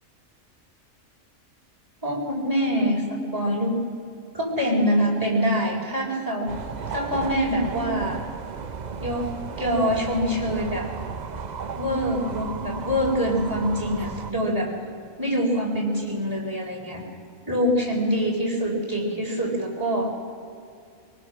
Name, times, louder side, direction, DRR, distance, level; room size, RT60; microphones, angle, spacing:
voice 1, 2.0-3.7 4.3-6.5 6.9-8.2 9.0-10.9 11.8-14.7 15.2-17.0 17.4-20.1, equal, 15° right, -3 dB, 4.5 m, -25 dB
sound 1, 6.5-14.3, right 6 dB, 45° right, 0.6 m, -34 dB
25.0 x 19.5 x 6.3 m, 2.4 s
omnidirectional pair, 1.4 m